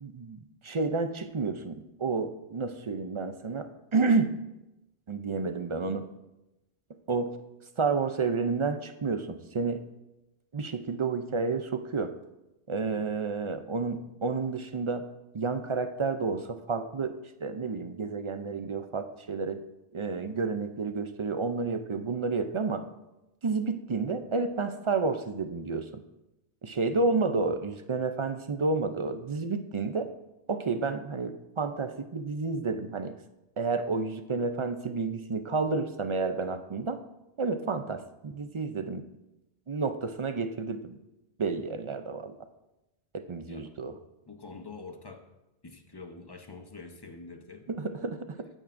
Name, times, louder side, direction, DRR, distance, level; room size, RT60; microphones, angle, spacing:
voice 1, 0.0-4.4 5.1-6.1 7.1-7.4 7.8-9.8 10.5-12.1 12.7-15.1 15.3-19.6 19.9-22.9 23.4-26.0 26.6-30.1 30.5-33.2 33.6-37.0 37.4-39.1 39.7-41.0 41.4-42.4 43.1-44.0 47.7-48.5, right 4 dB, 40° right, 9 dB, 0.4 m, -30 dB
voice 2, 44.3-45.3 45.6-48.1, left 3 dB, 25° left, 6 dB, 0.7 m, -46 dB
15.0 x 8.9 x 2.6 m, 0.94 s
omnidirectional pair, 1.1 m